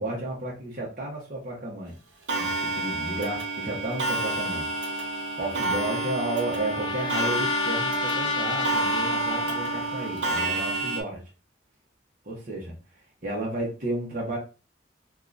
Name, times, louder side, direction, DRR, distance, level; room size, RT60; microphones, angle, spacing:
voice 1, 0.0-1.9 2.4-4.7 5.4-11.2 12.2-12.7 13.2-14.4, right 1 dB, 45° right, -3 dB, 0.9 m, -32 dB
Clock, 2.3-11.0, right 2 dB, 80° right, 0.8 m, -29 dB
Trumpet, 5.4-10.2, left 2 dB, 25° left, 0.3 m, -31 dB
3.5 x 2.3 x 2.5 m, 0.32 s
head